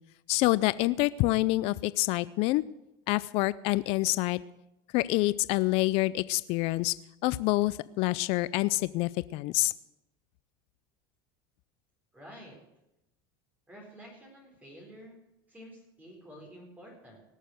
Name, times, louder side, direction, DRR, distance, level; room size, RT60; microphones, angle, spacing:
voice 1, 0.3-2.6 3.1-4.4 4.9-6.9 7.2-9.7, left 19 dB, 55° left, 18 dB, 0.4 m, -27 dB
voice 2, 12.1-12.6 13.7-15.2 15.5-17.2, equal, 15° right, -1 dB, 4.1 m, -50 dB
18.0 x 6.7 x 7.9 m, 0.90 s
supercardioid pair, 115°, 12 cm